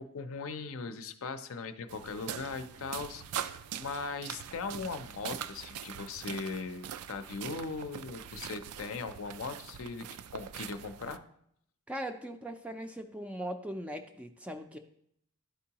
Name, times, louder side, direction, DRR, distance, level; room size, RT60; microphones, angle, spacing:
voice 1, 0.0-10.1 10.3-11.2, left 4 dB, 65° left, 9 dB, 0.5 m, -39 dB
sound 1, 1.9-11.2, right 9 dB, 85° right, 0.4 m, -43 dB
voice 2, 11.9-14.8, right 1 dB, 5° right, 6 dB, 0.3 m, -39 dB
11.5 x 4.5 x 2.9 m, 0.70 s
head